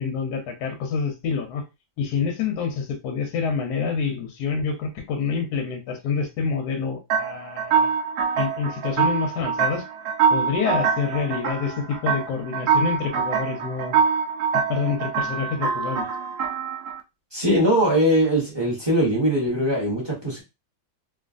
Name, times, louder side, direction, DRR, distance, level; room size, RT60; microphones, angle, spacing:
voice 1, 0.0-1.6 2.0-7.9 8.4-9.8 10.3-14.0 14.5-16.1, left 5 dB, 65° left, 3 dB, 1.0 m, -27 dB
sound 1, 7.1-17.0, right 6 dB, 85° right, 0.8 m, -24 dB
voice 2, 17.3-20.4, equal, 20° right, -4 dB, 0.8 m, -21 dB
3.1 x 2.4 x 2.5 m, 0.25 s
omnidirectional pair, 2.3 m